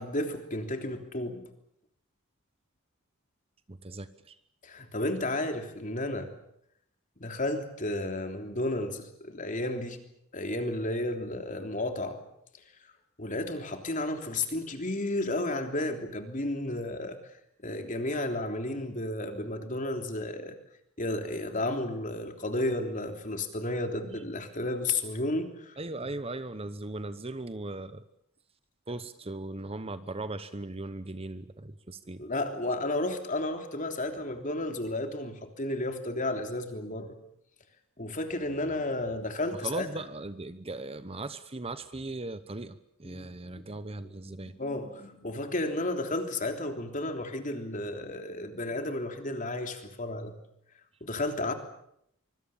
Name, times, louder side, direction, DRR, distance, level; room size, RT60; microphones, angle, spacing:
voice 1, 0.0-1.5 4.6-6.3 7.2-10.0 10.3-12.2 13.2-17.2 17.6-20.5 21.0-25.8 32.2-37.1 38.0-39.9 43.0-43.7 44.2-50.3 51.0-51.5, left 2 dB, 40° left, 5 dB, 3.3 m, -32 dB
voice 2, 3.7-4.4 25.8-28.0 28.9-32.2 39.5-44.5, right 2 dB, 30° right, 13 dB, 1.0 m, -38 dB
25.0 x 24.0 x 7.3 m, 0.74 s
head